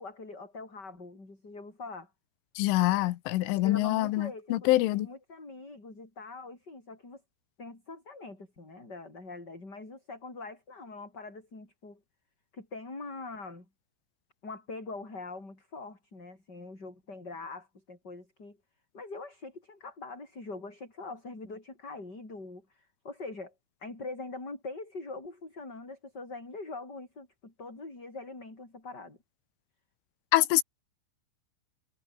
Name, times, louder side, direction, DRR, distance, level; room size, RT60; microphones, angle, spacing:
voice 1, 0.0-2.1 3.5-7.2 7.6-12.0 12.5-13.7 14.4-18.6 18.9-23.5 23.8-29.2, left 3 dB, 20° left, 7.4 m, -43 dB
voice 2, 2.6-5.1 30.3-30.6, left 17 dB, 80° left, 3.5 m, -25 dB
omnidirectional pair, 5.7 m